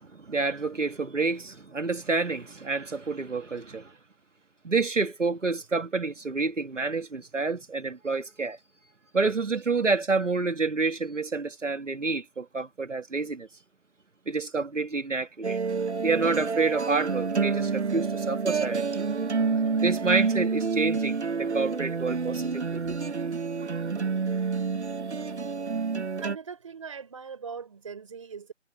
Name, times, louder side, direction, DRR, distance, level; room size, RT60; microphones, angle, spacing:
voice 1, 0.0-3.9 4.6-8.6 9.1-13.5 14.3-15.6 16.0-18.9 19.8-23.0, right 4 dB, 85° right, 2.3 m, -28 dB
sound 1, 15.4-26.4, right 5 dB, 65° right, 1.0 m, -28 dB
voice 2, 26.2-28.5, right 6 dB, 25° right, 4.5 m, -40 dB
figure-of-eight pair, 170°, 36 cm